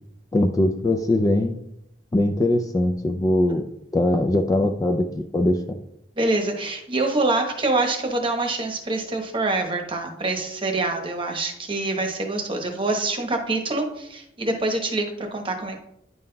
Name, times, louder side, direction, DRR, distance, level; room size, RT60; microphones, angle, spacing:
voice 1, 0.3-1.6 2.1-3.7 3.9-5.6, left 1 dB, 20° left, 5 dB, 0.3 m, -21 dB
voice 2, 6.2-15.8, right 2 dB, 30° right, 3 dB, 1.0 m, -25 dB
9.4 x 5.4 x 2.2 m, 0.80 s
head